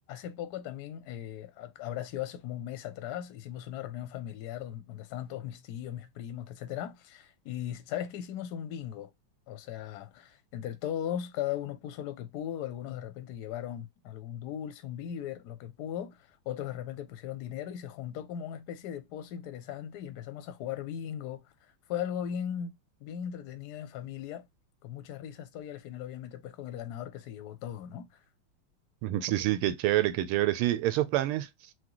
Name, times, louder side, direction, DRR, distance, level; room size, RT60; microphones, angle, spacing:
voice 1, 0.1-9.1 9.5-21.5 21.9-24.5 24.8-28.1, left 10 dB, 70° left, 1.0 m, -38 dB
voice 2, 29.0-31.5, right 14 dB, 90° right, 1.5 m, -27 dB
6.2 x 2.3 x 2.9 m
omnidirectional pair, 2.3 m